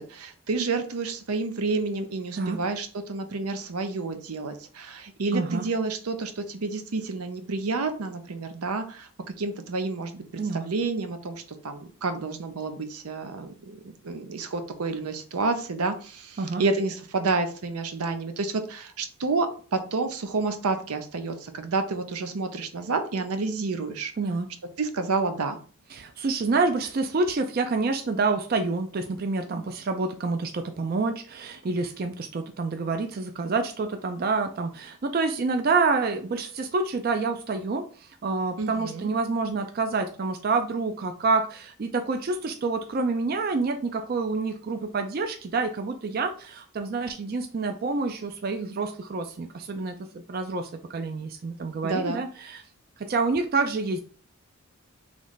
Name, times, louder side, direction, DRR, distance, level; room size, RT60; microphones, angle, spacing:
voice 1, 0.0-10.2 10.5-24.1 24.8-25.6 38.6-39.1 51.8-52.2, right 3 dB, 90° right, 8 dB, 0.6 m, -29 dB
voice 2, 5.3-5.6 10.4-10.6 16.4-16.6 24.2-24.5 25.9-52.6 53.0-54.0, right 3 dB, 45° right, 6 dB, 0.4 m, -28 dB
3.3 x 3.1 x 3.9 m, 0.42 s
head